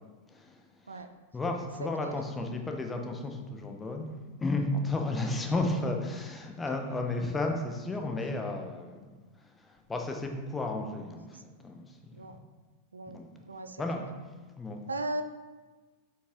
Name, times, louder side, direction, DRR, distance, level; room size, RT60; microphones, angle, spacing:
voice 1, 0.3-1.0 1.3-12.4 13.1-13.5 13.8-14.8, left 2 dB, 15° left, 3 dB, 1.0 m, -34 dB
voice 2, 13.5-13.8 14.9-15.2, right 2 dB, 75° right, 8 dB, 0.5 m, -36 dB
8.3 x 5.4 x 3.8 m, 1.3 s
figure-of-eight pair, 90°, 0 cm